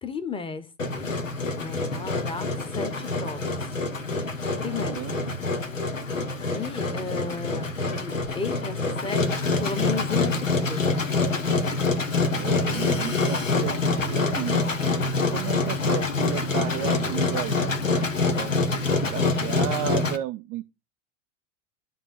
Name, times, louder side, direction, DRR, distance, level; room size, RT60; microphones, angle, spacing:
voice 1, 0.0-0.7 0.9-1.1 1.5-3.7 4.6-5.0 6.5-7.7 8.3-11.1, left 5 dB, 15° left, 1.2 m, -34 dB
Engine, 0.8-20.2, left 3 dB, 80° left, 1.3 m, -26 dB
voice 2, 4.6-5.4 12.3-15.0 15.3-18.5 19.0-20.7, right 14 dB, 25° right, 0.4 m, -34 dB
11.0 x 3.8 x 7.2 m
figure-of-eight pair, 90°, 38 cm